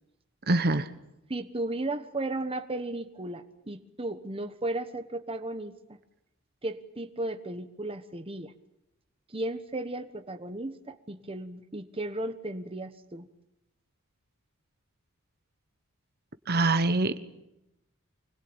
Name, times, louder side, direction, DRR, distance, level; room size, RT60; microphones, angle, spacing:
voice 1, 0.5-0.9 16.5-17.2, right 2 dB, 45° right, 11 dB, 1.2 m, -24 dB
voice 2, 1.3-5.7 6.6-8.5 9.3-13.3, right 2 dB, 25° right, 8 dB, 1.3 m, -35 dB
25.5 x 20.5 x 8.9 m, 0.87 s
head